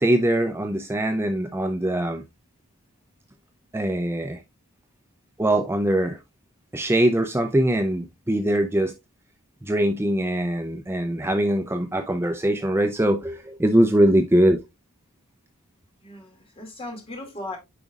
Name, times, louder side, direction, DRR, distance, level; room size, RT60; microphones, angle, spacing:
voice 1, 0.0-2.2 3.7-4.4 5.4-6.2 6.7-8.9 9.6-14.6, right 1 dB, 10° right, 0.5 m, -22 dB
voice 2, 16.0-17.6, left 2 dB, 25° left, 2.3 m, -37 dB
9.1 x 5.0 x 2.4 m
head